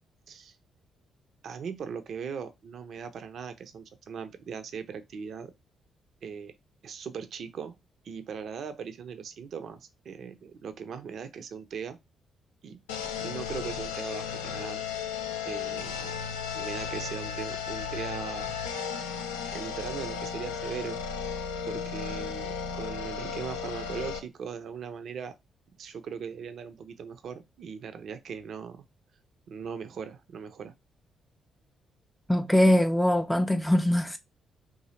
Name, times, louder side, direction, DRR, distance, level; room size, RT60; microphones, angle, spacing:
voice 1, 1.4-5.5 6.2-6.5 6.8-7.8 8.0-12.0 12.6-12.8 13.2-14.8 15.4-16.1 16.5-18.6 19.5-21.0 21.6-25.3 25.8-28.8 29.5-30.7, right 6 dB, 60° right, 0.4 m, -39 dB
sound 1, 12.9-24.2, left 6 dB, 80° left, 0.4 m, -35 dB
voice 2, 32.3-34.2, left 1 dB, 5° left, 0.3 m, -22 dB
3.8 x 2.6 x 2.8 m
hypercardioid pair, 40°, 0 cm